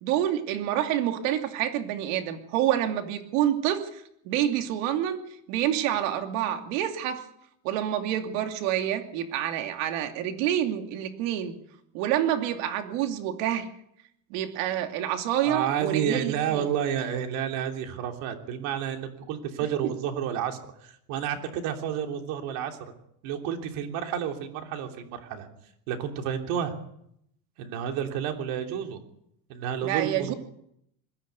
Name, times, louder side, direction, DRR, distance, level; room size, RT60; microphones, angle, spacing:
voice 1, 0.0-5.2 5.5-7.2 7.6-11.5 11.9-13.7 14.3-16.7 29.8-30.3, right 11 dB, 80° right, 6 dB, 2.8 m, -27 dB
voice 2, 15.4-22.8 23.2-25.5 25.9-26.7 27.6-29.0 29.5-30.3, right 9 dB, 60° right, 4 dB, 3.3 m, -30 dB
21.0 x 15.5 x 8.3 m, 0.74 s
cardioid pair, 180°, 38 cm